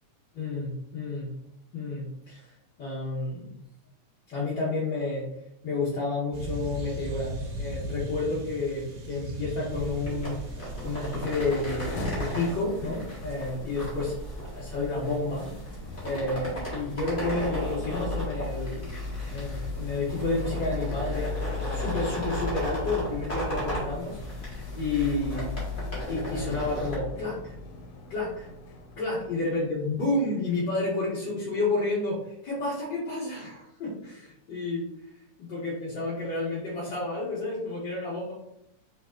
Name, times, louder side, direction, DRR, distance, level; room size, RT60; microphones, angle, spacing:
voice 1, 0.3-1.3 1.7-3.5 4.3-5.2 5.6-10.4 10.8-14.1 14.4-15.5 16.0-19.0 19.3-24.2 24.7-25.7 26.1-27.5 28.1-28.5 29.0-34.9 35.4-38.3, left 2 dB, 40° left, -12 dB, 2.0 m, -30 dB
sound 1, 6.3-12.6, right 1 dB, 85° right, 2.5 m, -37 dB
sound 2, 9.7-27.0, equal, 25° left, 1.1 m, -36 dB
sound 3, 11.7-29.9, left 3 dB, 85° left, 2.0 m, -38 dB
4.9 x 4.0 x 2.4 m, 0.79 s
omnidirectional pair, 3.3 m